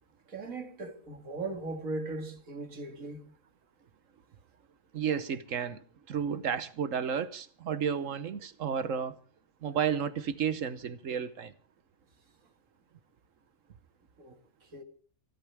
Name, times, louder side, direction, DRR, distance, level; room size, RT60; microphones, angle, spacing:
voice 1, 0.3-3.2 14.2-14.4 14.7-14.8, right 2 dB, 85° right, 2.4 m, -38 dB
voice 2, 4.9-5.8 6.1-9.2 9.6-11.5, right 7 dB, 70° right, 1.3 m, -32 dB
27.5 x 12.0 x 3.4 m
omnidirectional pair, 1.4 m